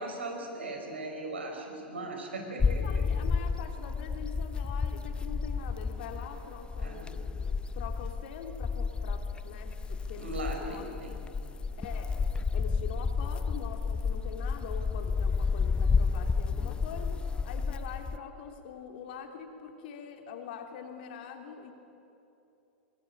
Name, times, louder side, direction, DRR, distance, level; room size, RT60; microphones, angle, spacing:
voice 1, 0.0-3.1 6.8-7.2 10.2-11.1, right 2 dB, 85° right, 2 dB, 5.3 m, -38 dB
voice 2, 2.5-10.3 10.6-10.8 11.8-12.2 12.5-17.2 17.4-21.7, left 7 dB, 60° left, 4 dB, 3.2 m, -44 dB
sound 1, 2.6-18.2, left 5 dB, 15° left, 0.8 m, -31 dB
23.5 x 22.5 x 8.8 m, 2.9 s
hypercardioid pair, 100°, 6 cm